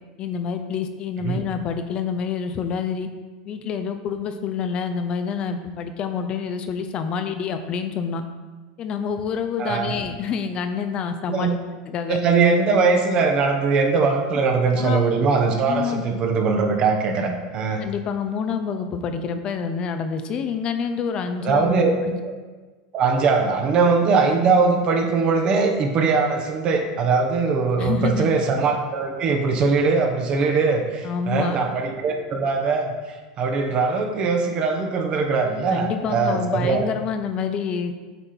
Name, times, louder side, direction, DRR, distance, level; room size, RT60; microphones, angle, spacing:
voice 1, 0.2-3.1 3.5-8.2 8.8-11.6 11.9-12.2 14.7-15.1 15.7-16.0 17.8-21.7 22.0-22.2 27.8-28.3 31.0-31.6 35.7-38.0, left 6 dB, 40° left, 8 dB, 0.6 m, -27 dB
voice 2, 9.6-9.9 11.3-11.5 12.1-17.8 21.4-21.9 22.2-22.3 22.9-32.9 33.4-36.9, right 4 dB, 40° right, 3 dB, 1.1 m, -21 dB
8.1 x 3.7 x 4.4 m, 1.3 s
hypercardioid pair, 105°, 2 cm